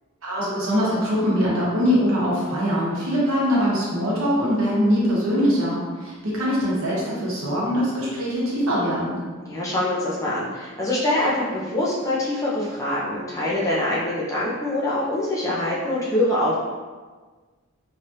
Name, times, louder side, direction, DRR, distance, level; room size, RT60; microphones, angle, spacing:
voice 1, 0.2-9.2, equal, 70° right, -6 dB, 1.0 m, -22 dB
voice 2, 9.4-16.6, left 1 dB, 15° left, -7 dB, 0.4 m, -24 dB
3.2 x 2.4 x 2.7 m, 1.4 s
head